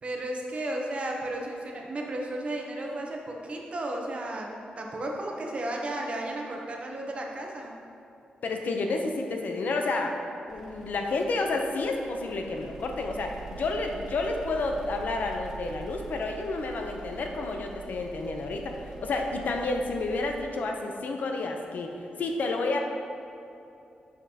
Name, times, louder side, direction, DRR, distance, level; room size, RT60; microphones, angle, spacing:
voice 1, 0.0-7.7, right 1 dB, 40° right, 0 dB, 0.7 m, -34 dB
voice 2, 8.4-10.2 10.5-22.8, left 3 dB, 65° left, 3 dB, 0.6 m, -30 dB
sound 1, 10.5-20.4, right 5 dB, 10° right, 0.9 m, -45 dB
7.6 x 5.2 x 2.8 m, 2.7 s
wide cardioid pair, 120°, 3 cm